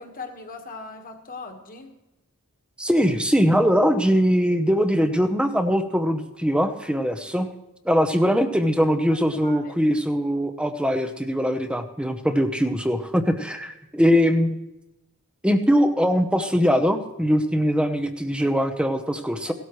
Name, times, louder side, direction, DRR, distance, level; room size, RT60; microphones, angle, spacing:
voice 1, 0.0-1.9 7.3-7.5 9.1-9.8 12.2-12.4 19.5-19.6, left 3 dB, 40° left, 4 dB, 1.5 m, -40 dB
voice 2, 2.8-7.5 7.8-14.6 15.4-19.5, equal, 5° right, 8 dB, 0.8 m, -21 dB
17.0 x 13.0 x 3.1 m, 0.98 s
head